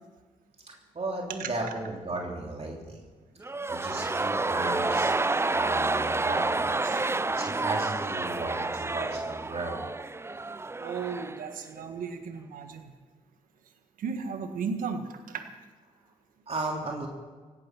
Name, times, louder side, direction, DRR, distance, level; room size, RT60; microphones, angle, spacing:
voice 1, 0.7-3.0 3.7-5.1 5.5-6.7 7.3-9.8 16.5-17.1, right 2 dB, 45° right, 0 dB, 3.2 m, -35 dB
sound 1, 3.4-11.5 11.8-11.9, right 3 dB, 20° right, 0.5 m, -29 dB
voice 2, 10.8-12.9 14.0-15.4, right 5 dB, 85° right, 7 dB, 1.6 m, -35 dB
17.0 x 11.5 x 6.1 m, 1.4 s
supercardioid pair, 55°, 14 cm